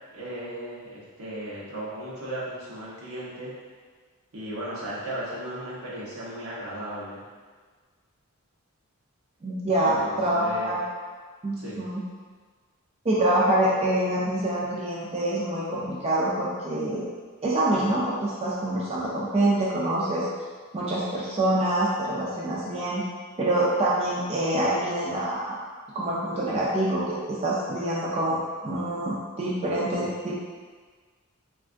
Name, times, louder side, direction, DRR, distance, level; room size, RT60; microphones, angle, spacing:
voice 1, 0.1-3.5 4.3-7.2 9.8-10.7 11.6-11.8, right 1 dB, 75° right, -7 dB, 0.9 m, -36 dB
voice 2, 9.4-10.8 11.4-12.0 13.0-17.1 17.4-20.3 20.7-23.0 23.4-25.6 25.9-30.4, right 1 dB, 30° right, -6 dB, 0.4 m, -26 dB
3.5 x 2.4 x 2.5 m, 1.5 s
head